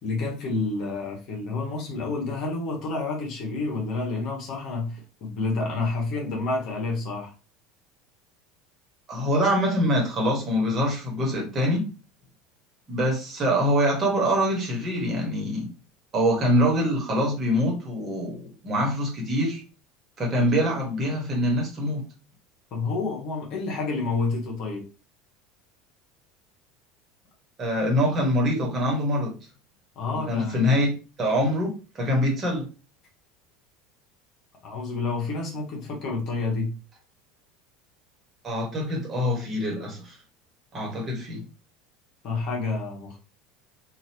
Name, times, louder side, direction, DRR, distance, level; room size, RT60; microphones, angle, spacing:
voice 1, 0.0-7.3 22.7-24.8 29.9-30.6 34.6-36.7 42.2-43.2, left 3 dB, 50° left, 1.2 m, -29 dB
voice 2, 9.1-11.9 12.9-15.7 16.1-19.6 20.2-22.0 27.6-29.3 30.1-32.6 38.4-40.1 40.7-41.4, equal, 35° right, 1.3 m, -24 dB
2.8 x 2.6 x 2.8 m
hypercardioid pair, 75°, 0 cm